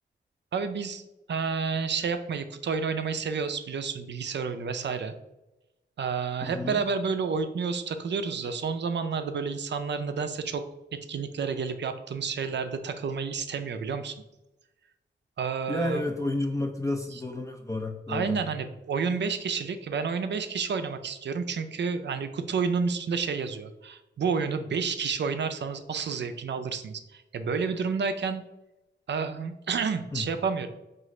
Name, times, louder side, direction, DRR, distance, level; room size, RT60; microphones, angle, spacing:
voice 1, 0.5-1.0 1.3-5.1 6.0-10.6 11.1-14.2 15.4-16.1 17.1-17.2 18.1-28.4 29.1-30.7, right 5 dB, 65° right, 9 dB, 0.4 m, -30 dB
voice 2, 6.4-6.8 15.7-18.4 30.1-30.2, left 2 dB, 15° left, 2 dB, 0.4 m, -31 dB
4.8 x 2.5 x 3.0 m, 0.96 s
wide cardioid pair, 100°, 19 cm